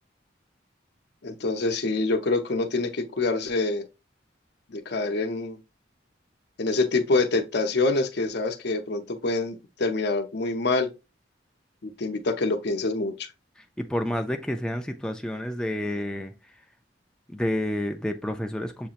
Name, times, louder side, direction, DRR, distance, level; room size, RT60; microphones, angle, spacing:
voice 1, 1.2-3.8 4.7-5.6 6.6-10.9 11.8-13.3, left 3 dB, 65° left, 0.7 m, -26 dB
voice 2, 13.8-16.3 17.3-18.9, left 1 dB, 5° left, 0.3 m, -29 dB
6.7 x 2.9 x 2.4 m
head